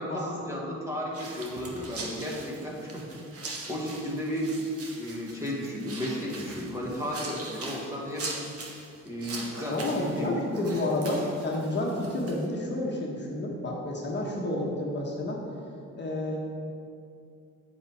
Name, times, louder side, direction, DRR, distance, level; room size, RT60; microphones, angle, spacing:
voice 1, 0.0-3.2 3.7-4.6 4.9-8.3 9.0-10.7, equal, 10° right, -4 dB, 1.9 m, -34 dB
sound 1, 1.1-12.5, right 3 dB, 50° right, 1.5 m, -42 dB
voice 2, 9.7-15.4 16.0-16.4, left 1 dB, 35° left, -2 dB, 1.4 m, -30 dB
8.4 x 7.9 x 3.6 m, 2.4 s
cardioid pair, 90°, 30 cm